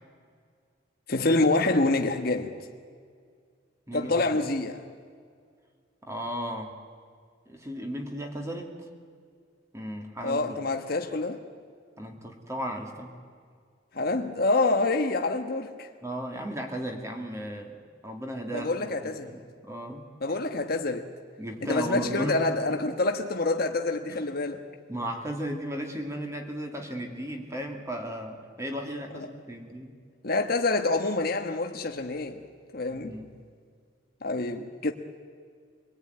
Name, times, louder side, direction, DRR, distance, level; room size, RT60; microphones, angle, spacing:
voice 1, 1.1-2.5 3.9-4.8 10.2-11.4 13.9-15.9 18.5-19.4 20.2-21.1 21.6-24.6 30.2-32.4 32.7-33.1 34.2-34.9, left 2 dB, 50° left, 1.2 m, -27 dB
voice 2, 3.9-4.2 6.0-6.7 7.5-8.7 9.7-10.6 12.0-13.1 16.0-17.7 18.0-20.4 21.4-22.8 24.1-24.2 24.9-29.9 32.9-33.3, equal, 15° right, 2.5 m, -35 dB
26.5 x 20.0 x 9.5 m
head